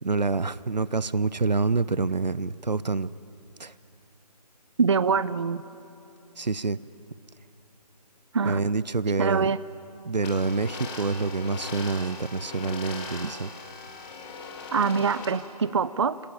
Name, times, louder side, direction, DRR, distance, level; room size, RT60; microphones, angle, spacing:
voice 1, 0.0-3.1 3.6-3.7 6.4-6.8 8.4-9.5 10.0-13.5, right 4 dB, 85° right, 0.7 m, -27 dB
voice 2, 4.8-5.6 8.3-8.6 9.2-9.6 14.7-16.2, right 5 dB, 45° right, 0.4 m, -24 dB
sound 1, 10.2-15.3, left 4 dB, 15° left, 1.8 m, -39 dB
24.5 x 18.0 x 10.0 m
figure-of-eight pair, 150°, 21 cm